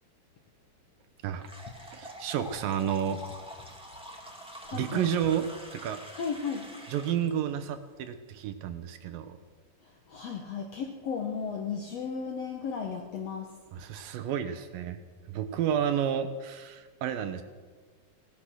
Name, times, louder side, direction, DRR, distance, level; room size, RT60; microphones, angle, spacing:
sound 1, 1.4-7.3, equal, 5° right, 0.9 m, -46 dB
voice 1, 1.9-3.2 4.7-5.5 5.7-6.0 6.9-9.4 13.7-15.0 15.3-17.4, right 9 dB, 75° right, 10 dB, 2.3 m, -31 dB
voice 2, 4.6-5.1 6.1-6.7 9.8-13.6, left 6 dB, 65° left, 1 dB, 1.6 m, -35 dB
17.5 x 12.0 x 6.3 m, 1.4 s
omnidirectional pair, 4.4 m